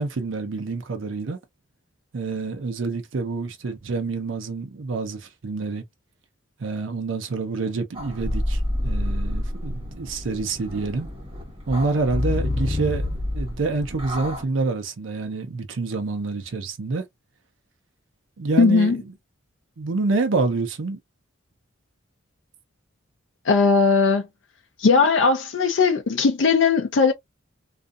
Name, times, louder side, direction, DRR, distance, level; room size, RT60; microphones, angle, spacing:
voice 1, 0.0-1.4 2.1-5.8 6.6-11.1 11.7-13.1 13.3-17.0 18.4-19.0 19.8-21.0, right 3 dB, 85° right, 0.6 m, -27 dB
sound 1, 7.9-14.4, left 1 dB, 30° right, 1.2 m, -28 dB
voice 2, 18.6-19.0 23.5-24.3 24.8-27.1, left 4 dB, 70° left, 0.4 m, -18 dB
2.6 x 2.4 x 2.3 m
head